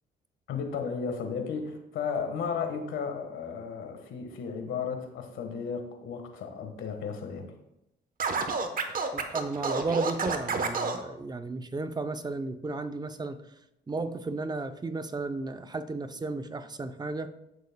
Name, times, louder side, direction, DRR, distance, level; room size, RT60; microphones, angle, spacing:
voice 1, 0.5-7.5, left 6 dB, 80° left, 5 dB, 1.4 m, -34 dB
Scratching (performance technique), 8.2-11.0, right 4 dB, 45° right, 1.0 m, -29 dB
voice 2, 9.1-13.4 13.9-17.3, right 3 dB, 20° right, 9 dB, 0.6 m, -34 dB
13.5 x 6.4 x 2.2 m, 0.86 s
cardioid pair, 90°, 20 cm